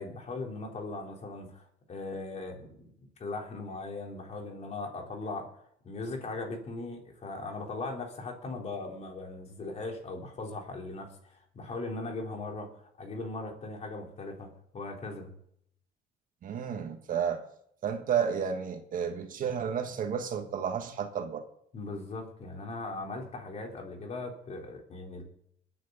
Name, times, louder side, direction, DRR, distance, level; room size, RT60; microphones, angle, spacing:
voice 1, 0.0-2.9 3.2-5.5 5.8-15.3 21.7-25.2, left 3 dB, 40° left, 1 dB, 3.9 m, -39 dB
voice 2, 16.4-17.4 17.8-21.4, right 7 dB, 55° right, 6 dB, 1.7 m, -31 dB
22.0 x 9.7 x 4.1 m, 0.70 s
cardioid pair, 110°, 17 cm